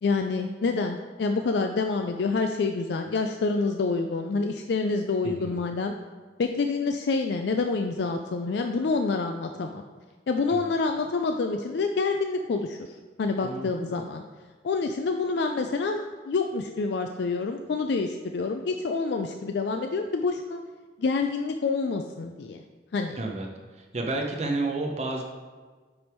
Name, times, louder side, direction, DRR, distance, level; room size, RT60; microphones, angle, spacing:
voice 1, 0.0-5.9 6.4-9.8 10.3-12.8 13.2-14.2 14.6-20.6 21.0-22.6 22.9-23.2, left 4 dB, 60° left, 5 dB, 0.4 m, -27 dB
voice 2, 23.2-23.5 23.7-25.2, right 2 dB, 35° right, 1 dB, 0.7 m, -30 dB
9.3 x 3.4 x 4.4 m, 1.4 s
head